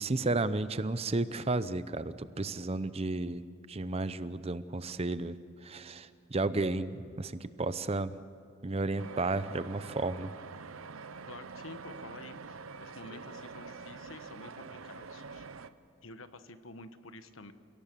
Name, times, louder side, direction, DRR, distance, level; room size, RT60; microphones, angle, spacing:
voice 1, 0.0-3.4 3.7-5.3 5.6-8.2 8.6-10.3, right 2 dB, 30° right, 13 dB, 0.7 m, -33 dB
sound 1, 9.0-15.7, right 4 dB, 85° right, 0.8 m, -46 dB
voice 2, 11.3-15.5 16.0-17.5, left 2 dB, 75° left, 10 dB, 1.3 m, -49 dB
29.5 x 17.5 x 6.9 m, 2.5 s
head